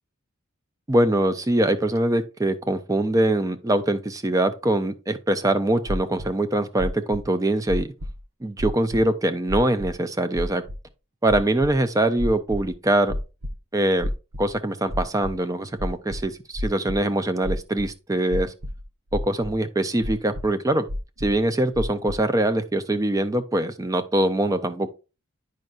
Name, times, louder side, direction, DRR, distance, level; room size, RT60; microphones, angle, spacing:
voice 1, 0.9-7.9 8.4-10.6 11.2-13.1 13.7-14.1 14.4-18.5 19.1-20.9 21.2-24.9, right 1 dB, 15° right, 0.4 m, -23 dB
sound 1, 5.9-6.3 6.8-7.2 7.7-8.2 8.6-9.0 9.5-9.9 10.4-10.8 11.3-11.7 12.2-12.7 13.1-13.5 14.0-14.5 14.9-15.3 15.8-17.0 17.4-17.9 18.3-18.8 19.1-19.6 20.0-20.5 20.9-21.4 21.7-22.2, left 1 dB, 70° right, 0.8 m, -30 dB
9.1 x 5.4 x 2.4 m
head